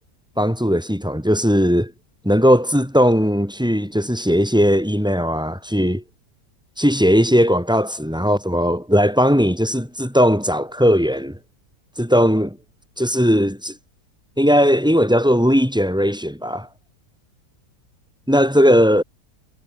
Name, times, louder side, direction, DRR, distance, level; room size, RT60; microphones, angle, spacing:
voice 1, 0.4-1.9 2.2-6.0 6.8-11.4 12.0-12.6 13.0-13.7 14.4-16.7 18.3-19.0, equal, ahead, 6.5 m, -18 dB
omnidirectional pair, 1.8 m